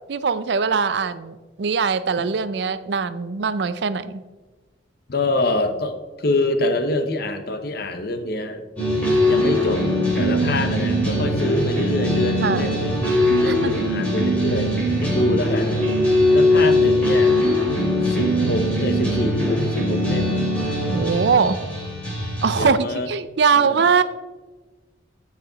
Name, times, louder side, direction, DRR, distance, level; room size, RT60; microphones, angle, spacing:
voice 1, 0.1-4.2 12.4-12.8 13.5-13.9 20.9-21.6 22.4-24.0, right 5 dB, 60° right, 14 dB, 0.4 m, -21 dB
voice 2, 5.1-8.6 9.3-9.9 10.2-13.1 13.4-14.7 15.0-15.9 16.3-17.3 18.0-20.5 22.6-23.1 23.6-23.8, left 1 dB, 55° left, 8 dB, 0.9 m, -25 dB
sound 1, 8.8-22.6, left 1 dB, 5° left, 3.0 m, -21 dB
14.0 x 4.9 x 3.9 m, 1.2 s
head